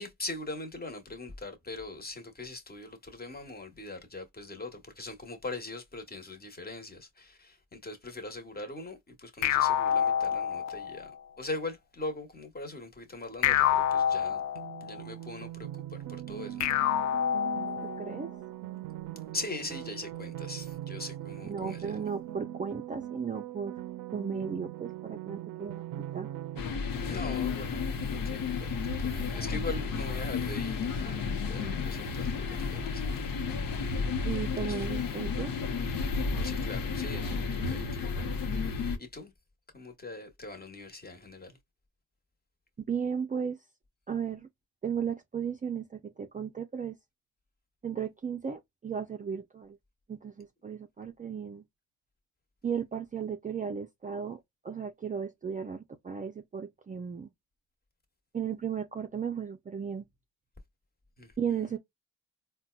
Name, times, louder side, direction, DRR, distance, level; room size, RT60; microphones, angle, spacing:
voice 1, 0.0-11.1 11.4-14.4 14.8-16.6 19.3-22.0 27.1-33.4 34.3-34.9 36.4-38.1 38.5-39.3 39.7-41.6 61.2-61.8, left 2 dB, 30° left, 1.2 m, -41 dB
sound 1, 9.4-11.1 13.4-15.0 16.6-18.1, left 9 dB, 55° left, 0.4 m, -27 dB
sound 2, 14.5-26.6, right 13 dB, 85° right, 0.5 m, -41 dB
voice 2, 17.8-18.3 21.5-23.8 24.1-26.3 34.3-35.5 37.8-37.9 42.8-43.6 44.1-44.5 44.8-47.0 47.8-49.8 50.1-51.6 52.6-54.4 54.6-57.3 58.3-60.1 61.4-61.8, right 7 dB, 25° right, 0.4 m, -35 dB
sound 3, 26.6-39.0, left 5 dB, 75° left, 0.8 m, -32 dB
4.0 x 2.2 x 2.3 m
cardioid pair, 80°, 33 cm